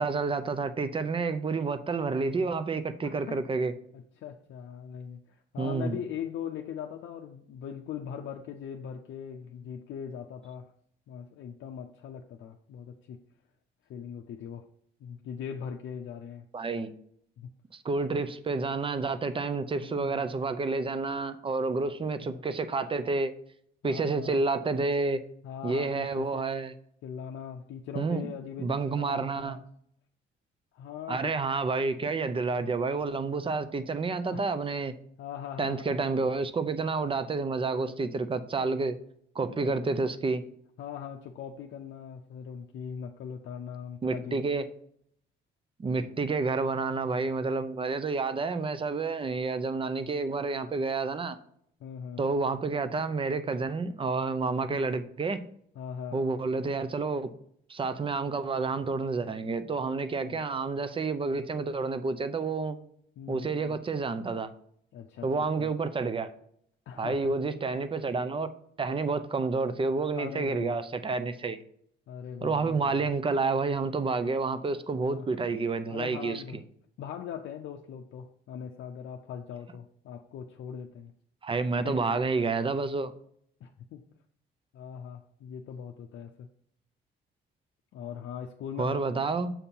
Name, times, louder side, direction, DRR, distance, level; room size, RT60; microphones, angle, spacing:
voice 1, 0.0-3.7 5.6-6.0 16.5-16.9 17.8-23.3 23.8-25.2 25.6-26.7 27.9-28.3 28.6-29.6 31.1-34.9 35.6-39.0 39.4-40.4 44.0-44.6 45.8-51.4 52.2-55.4 56.1-57.3 57.7-62.8 63.3-64.5 65.2-66.3 67.0-68.5 68.8-71.6 72.4-76.4 81.4-83.1 88.8-89.5, right 4 dB, 25° right, 12 dB, 0.5 m, -29 dB
voice 2, 3.0-3.4 3.9-10.7 11.1-13.2 13.9-14.6 15.0-16.5 17.4-17.5 19.8-20.2 22.2-22.5 23.8-24.4 25.4-26.5 27.0-29.6 30.7-31.3 32.3-32.4 34.3-34.5 35.2-35.9 37.6-38.0 38.6-38.8 39.4-39.8 40.8-44.4 46.0-46.1 51.8-52.2 55.8-56.2 60.2-60.4 63.2-63.8 64.9-65.7 66.9-67.4 70.1-70.9 72.1-73.1 74.9-75.4 75.9-76.6 77.0-81.1 81.8-82.2 83.6-84.0 84.7-86.5 87.9-89.3, left 8 dB, 75° left, 3 dB, 0.5 m, -41 dB
7.2 x 2.8 x 5.3 m, 0.67 s
cardioid pair, 90°, 20 cm